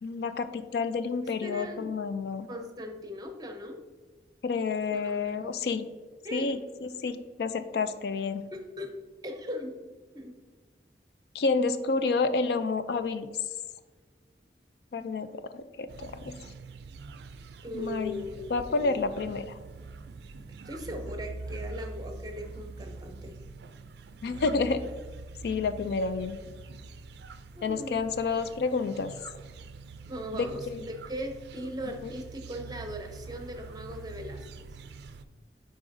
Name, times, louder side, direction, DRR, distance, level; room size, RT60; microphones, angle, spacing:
voice 1, 0.0-2.5 4.4-5.9 6.3-8.5 11.3-13.3 14.9-16.4 17.7-19.6 24.2-24.8 25.4-26.4 27.6-29.1 30.3-30.8 32.0-32.1, left 4 dB, 60° left, 11 dB, 0.3 m, -30 dB
voice 2, 1.4-1.9 2.5-3.8 4.9-5.5 6.2-6.5 8.5-8.9 9.2-9.8 10.1-10.3 17.6-19.1 20.7-23.4 27.6-28.0 30.1-34.7, equal, 20° right, 4 dB, 0.7 m, -39 dB
sound 1, 15.9-35.2, right 3 dB, 70° right, 0.4 m, -44 dB
9.7 x 3.8 x 2.6 m, 1.4 s
head